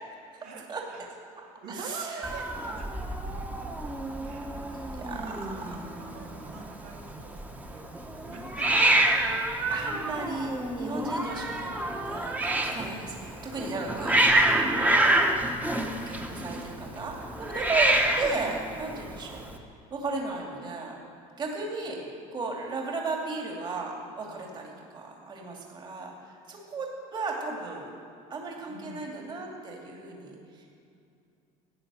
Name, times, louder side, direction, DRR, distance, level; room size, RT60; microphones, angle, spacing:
voice 1, 0.4-1.0 1.4-3.9 4.2-9.0 10.2-10.4 24.2-24.5 28.7-29.1, right 4 dB, 75° right, -1 dB, 3.0 m, -46 dB
voice 2, 1.4-2.3 4.7-5.2 9.7-15.2 15.9-19.4 19.9-20.9 21.4-22.0 22.3-27.9 28.3-30.7, right 3 dB, 30° right, -1 dB, 2.6 m, -35 dB
Hiss, 2.2-19.6, right 1 dB, 10° right, 1.3 m, -28 dB
15.5 x 9.8 x 7.6 m, 2.5 s
cardioid pair, 125°, 15 cm